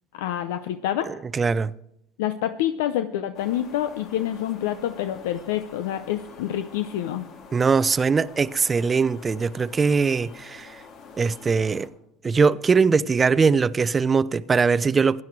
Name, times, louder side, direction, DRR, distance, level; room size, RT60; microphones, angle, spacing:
voice 1, 0.1-1.1 2.2-7.2, left 11 dB, 80° left, 0.6 m, -27 dB
voice 2, 1.3-1.7 7.5-10.7 11.2-11.9 12.2-15.2, right 5 dB, 25° right, 0.5 m, -21 dB
sound 1, 3.3-11.9, left 5 dB, 55° left, 2.0 m, -46 dB
16.0 x 10.5 x 4.6 m
supercardioid pair, 90°, 0 cm